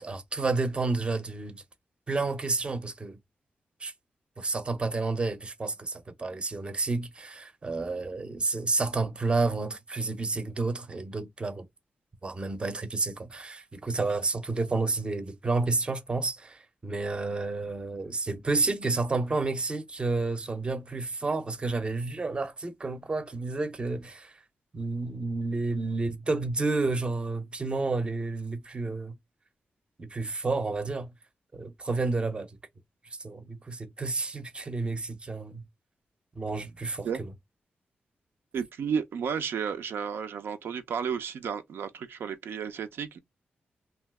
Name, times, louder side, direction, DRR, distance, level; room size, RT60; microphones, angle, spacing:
voice 1, 0.0-1.6 2.1-3.2 3.8-3.9 4.4-11.6 12.2-24.3 24.7-29.1 30.0-31.1 31.5-32.5 33.2-35.6 36.4-37.1, right 3 dB, 30° right, 0.5 m, -30 dB
voice 2, 38.5-43.2, right 7 dB, 85° right, 0.4 m, -32 dB
2.7 x 2.2 x 3.3 m
wide cardioid pair, 110°, 4 cm